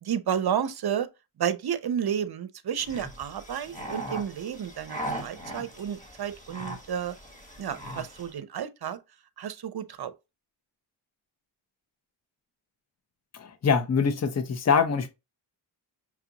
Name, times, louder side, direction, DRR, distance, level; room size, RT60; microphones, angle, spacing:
voice 1, 0.0-1.1 1.4-7.1 7.6-9.0 9.4-10.1, right 8 dB, 50° right, 0.7 m, -31 dB
sound 1, 2.8-8.3, right 1 dB, 15° left, 1.5 m, -39 dB
voice 2, 13.3-15.1, left 6 dB, 35° left, 0.8 m, -24 dB
6.1 x 2.5 x 2.9 m
cardioid pair, 70°, 48 cm